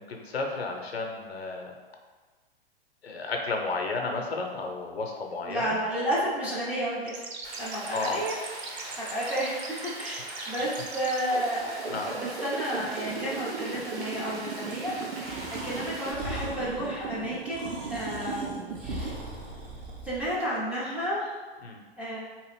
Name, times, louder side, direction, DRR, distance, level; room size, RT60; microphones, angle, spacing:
voice 1, 0.0-1.7 3.0-5.8 7.9-8.2 10.4-10.5 11.9-12.1 18.1-18.2 21.6-21.8, left 3 dB, 80° left, 2 dB, 0.6 m, -32 dB
voice 2, 5.5-7.2 7.6-8.4 8.7-10.2 10.5-19.1 20.0-21.4 22.0-22.3, equal, 5° right, -9 dB, 0.4 m, -32 dB
sound 1, 7.1-19.1, right 5 dB, 85° right, 0.5 m, -37 dB
Rain, 7.4-16.1, right 2 dB, 30° right, 0.7 m, -41 dB
Breathing, 15.2-20.3, right 1 dB, 60° right, 1.0 m, -40 dB
2.8 x 2.4 x 3.3 m, 1.3 s
figure-of-eight pair, 110°, 31 cm